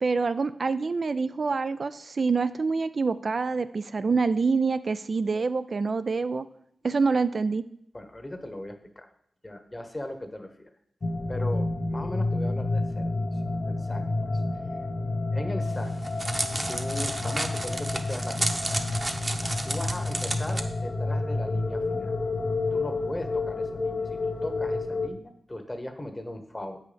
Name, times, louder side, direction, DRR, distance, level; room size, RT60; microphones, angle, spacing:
voice 1, 0.0-6.5 6.8-7.6, right 4 dB, 55° right, 12 dB, 0.3 m, -26 dB
voice 2, 7.9-9.1 9.4-10.7 11.3-14.0 14.3-14.4 15.3-15.9 16.7-19.1 19.6-22.1 22.7-26.8, left 1 dB, 20° left, 7 dB, 1.1 m, -38 dB
sound 1, 11.0-25.1, left 2 dB, 45° left, 0.7 m, -29 dB
Crackle, 15.6-20.6, right 1 dB, 25° right, 0.8 m, -31 dB
8.0 x 5.6 x 5.1 m, 0.70 s
wide cardioid pair, 80°, 0 cm